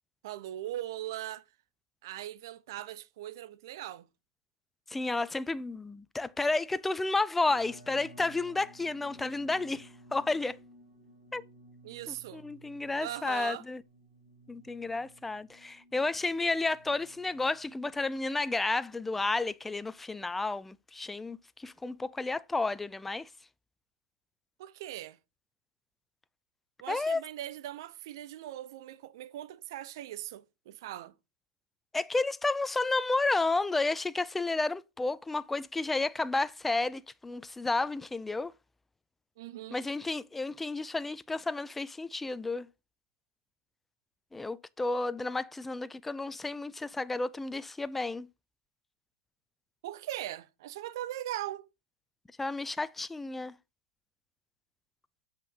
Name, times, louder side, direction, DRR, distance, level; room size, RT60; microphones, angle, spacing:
voice 1, 0.2-1.4 2.0-4.1 11.8-12.4 13.0-13.6 24.6-25.2 26.8-31.1 39.4-39.8 49.8-51.7, right 13 dB, 60° right, 0.6 m, -40 dB
voice 2, 4.9-10.6 11.3-11.4 12.1-13.8 14.5-23.3 26.9-27.2 31.9-38.5 39.7-42.7 44.3-48.3 52.4-53.5, left 3 dB, 5° left, 0.3 m, -31 dB
sound 1, 7.4-18.4, right 1 dB, 35° right, 4.5 m, -56 dB
7.2 x 5.5 x 3.7 m
hypercardioid pair, 135°, 2 cm